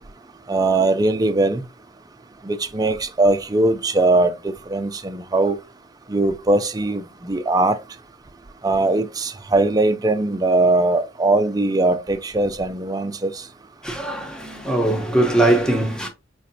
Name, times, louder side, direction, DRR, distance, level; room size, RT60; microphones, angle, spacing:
voice 1, 0.5-1.6 2.4-5.6 6.1-7.8 8.6-13.3, right 2 dB, 20° right, 0.4 m, -20 dB
voice 2, 13.8-16.1, right 1 dB, 5° left, 0.9 m, -20 dB
4.9 x 3.2 x 2.7 m
head